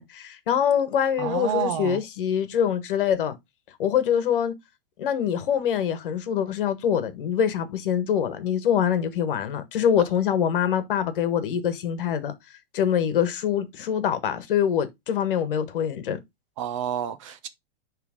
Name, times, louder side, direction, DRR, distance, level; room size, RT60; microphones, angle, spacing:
voice 1, 0.0-3.4 3.8-4.5 5.0-12.3 12.7-16.2, left 8 dB, 65° left, 1.4 m, -24 dB
voice 2, 1.2-2.0 16.6-17.5, right 9 dB, 35° right, 0.6 m, -29 dB
10.0 x 3.4 x 3.6 m
supercardioid pair, 170°, 29 cm